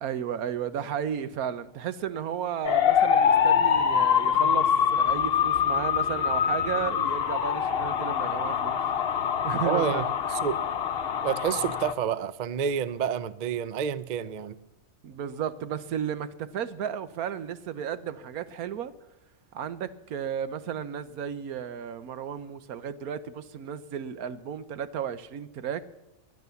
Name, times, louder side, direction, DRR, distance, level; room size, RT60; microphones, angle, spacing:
voice 1, 0.0-8.8 9.4-10.0 15.0-18.9 19.5-25.8, right 8 dB, 90° right, 14 dB, 1.3 m, -33 dB
sound 1, 2.6-11.9, left 8 dB, 50° left, 1.0 m, -24 dB
voice 2, 9.6-10.0 10.3-10.6 11.2-14.6, right 8 dB, 55° right, 16 dB, 0.5 m, -29 dB
20.0 x 10.5 x 7.0 m, 0.97 s
omnidirectional pair, 1.5 m